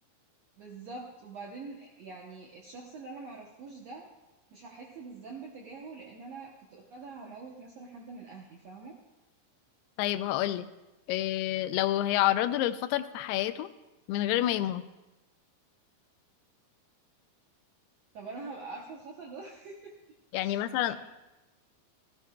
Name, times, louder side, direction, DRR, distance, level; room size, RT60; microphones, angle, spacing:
voice 1, 0.6-4.1 4.5-9.0 18.1-19.9 20.4-21.0, right 3 dB, 75° right, -1 dB, 1.5 m, -45 dB
voice 2, 10.0-10.7 11.1-13.7 14.1-14.8 20.3-21.0, left 13 dB, 90° left, 12 dB, 2.6 m, -28 dB
16.0 x 15.0 x 2.3 m, 1.0 s
omnidirectional pair, 4.5 m